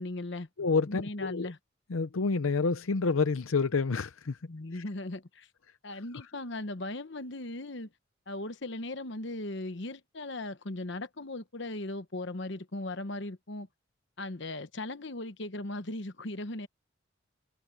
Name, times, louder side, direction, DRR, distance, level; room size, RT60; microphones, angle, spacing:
voice 1, 0.0-0.5 0.9-1.6 4.5-5.5 5.8-7.9 8.3-13.7 14.2-16.7, left 2 dB, 60° left, 1.1 m, -38 dB
voice 2, 0.6-1.5 1.9-4.4 4.7-4.8 5.9-6.2, left 4 dB, 85° left, 0.7 m, -29 dB
head